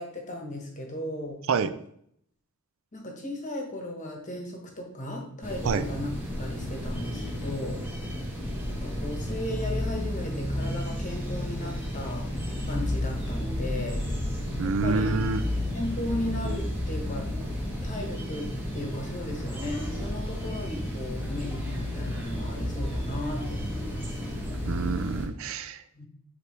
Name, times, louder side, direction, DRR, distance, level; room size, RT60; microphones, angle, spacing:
voice 1, 0.0-1.5 2.9-7.8 8.7-12.3 12.7-14.0 14.6-15.1 15.7-17.3 17.8-24.1 25.9-26.1, left 1 dB, 35° left, 2 dB, 1.2 m, -36 dB
sound 1, 5.4-25.3, left 1 dB, 10° right, 1.1 m, -32 dB
voice 2, 14.6-15.4 24.7-25.8, right 4 dB, 60° right, 10 dB, 0.4 m, -27 dB
7.6 x 4.0 x 3.1 m, 0.68 s
head